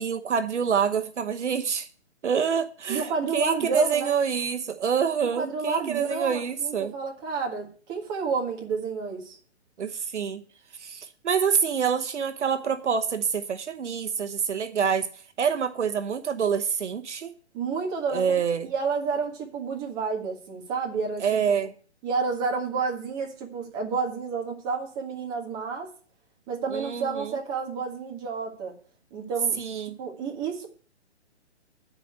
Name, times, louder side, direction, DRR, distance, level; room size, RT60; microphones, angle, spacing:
voice 1, 0.0-1.9 2.2-6.9 9.8-10.4 10.8-15.1 15.4-17.3 18.1-18.7 21.2-21.7 26.7-27.3 29.6-30.0, right 7 dB, 80° right, 1.1 m, -26 dB
voice 2, 2.9-4.1 5.2-9.4 17.5-18.3 18.6-21.7 22.0-25.9 26.5-28.7 29.1-29.6 30.0-30.7, right 5 dB, 20° right, 1.8 m, -30 dB
10.5 x 5.2 x 8.1 m
hypercardioid pair, 160°, 35 cm